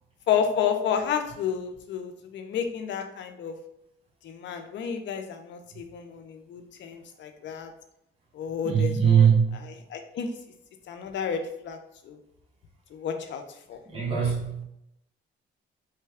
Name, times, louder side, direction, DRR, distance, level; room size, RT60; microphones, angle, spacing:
voice 1, 0.3-3.5 4.2-7.7 8.3-9.3 9.9-10.3 10.9-11.8 12.1-12.2 12.9-13.4 13.7-13.8, left 7 dB, 65° left, 6 dB, 0.5 m, -30 dB
voice 2, 8.6-9.6 13.9-14.6, right 7 dB, 30° right, -4 dB, 1.0 m, -21 dB
3.2 x 2.2 x 3.4 m, 0.80 s
cardioid pair, 90°, 20 cm